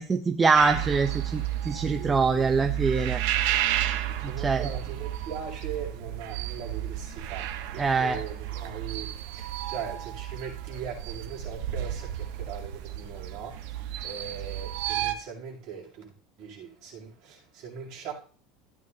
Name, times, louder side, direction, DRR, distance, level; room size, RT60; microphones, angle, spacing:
voice 1, 0.0-3.2 4.2-4.7 7.8-8.2, right 4 dB, 15° right, 0.6 m, -24 dB
sound 1, 0.6-15.1, right 12 dB, 70° right, 1.2 m, -32 dB
voice 2, 1.7-2.5 4.2-16.1 16.4-18.1, right 7 dB, 45° right, 6.9 m, -40 dB
16.0 x 9.5 x 2.8 m
cardioid pair, 170°, 0 cm